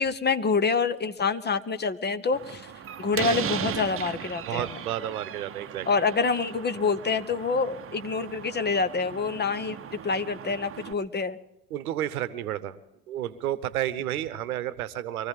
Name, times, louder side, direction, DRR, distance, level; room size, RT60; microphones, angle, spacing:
voice 1, 0.0-2.7 3.0-4.8 5.9-11.4, left 4 dB, 25° left, 13 dB, 1.0 m, -27 dB
Slam, 2.3-10.9, right 9 dB, 30° right, 0.9 m, -37 dB
voice 2, 4.4-6.0 11.7-12.8 13.1-15.3, right 12 dB, 75° right, 16 dB, 1.0 m, -31 dB
24.0 x 15.0 x 3.7 m, 0.87 s
hypercardioid pair, 65°, 44 cm